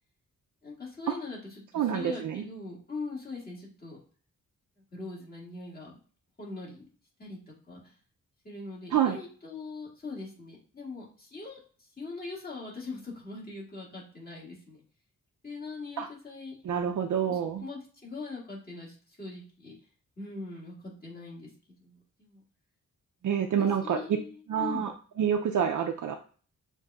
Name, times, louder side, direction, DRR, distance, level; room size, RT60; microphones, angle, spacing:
voice 1, 0.6-4.0 4.9-6.0 6.4-6.9 7.2-7.9 8.4-14.8 15.4-16.6 17.3-19.7 20.2-21.5 21.8-22.4 23.3-24.9, left 3 dB, 30° left, -4 dB, 1.9 m, -42 dB
voice 2, 1.7-2.4 8.9-9.2 16.0-16.1 16.6-17.7 23.2-24.0 24.5-24.9 25.2-26.1, right 8 dB, 65° right, 4 dB, 0.5 m, -27 dB
6.5 x 2.7 x 2.3 m, 0.41 s
wide cardioid pair, 105°, 33 cm